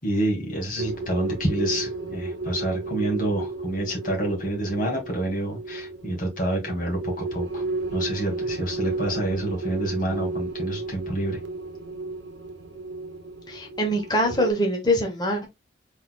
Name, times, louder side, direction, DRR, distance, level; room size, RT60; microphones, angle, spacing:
voice 1, 0.0-7.6 7.9-11.4, right 1 dB, 45° left, 2.4 m, -28 dB
sound 1, 0.8-14.5, right 2 dB, 80° right, 0.8 m, -33 dB
voice 2, 13.5-15.5, equal, 25° left, 1.1 m, -24 dB
4.4 x 4.2 x 2.4 m
head